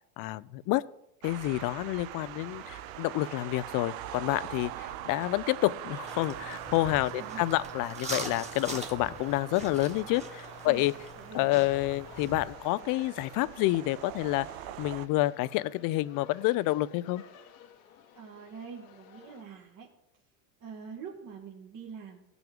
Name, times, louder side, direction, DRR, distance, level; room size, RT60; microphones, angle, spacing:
voice 1, 0.2-0.8 1.2-10.9 11.3-14.5 14.8-17.2, left 18 dB, 50° left, 18 dB, 0.5 m, -29 dB
sound 1, 1.2-15.1, right 14 dB, 75° right, 0.6 m, -43 dB
sound 2, 1.6-19.4, left 8 dB, 80° left, 1.4 m, -54 dB
sound 3, 6.0-12.5, right 2 dB, 15° right, 1.6 m, -43 dB
voice 2, 7.1-7.5 10.6-10.8 11.2-11.7 18.1-19.9 20.6-22.2, right 6 dB, 50° right, -1 dB, 1.7 m, -45 dB
16.0 x 6.0 x 3.6 m, 0.83 s
supercardioid pair, 90°, 41 cm